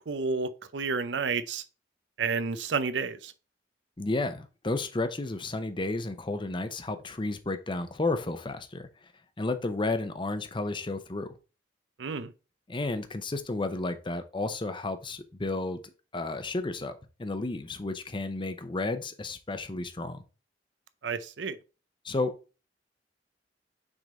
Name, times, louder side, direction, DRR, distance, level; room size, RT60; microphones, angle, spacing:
voice 1, 0.1-1.6 2.2-3.3 12.0-12.3 21.0-21.6, right 5 dB, 80° right, 0.6 m, -30 dB
voice 2, 4.0-8.9 9.4-11.3 12.7-15.8 16.1-16.9 17.2-20.2 22.0-22.6, left 2 dB, 30° left, 0.7 m, -32 dB
6.2 x 3.8 x 4.1 m
head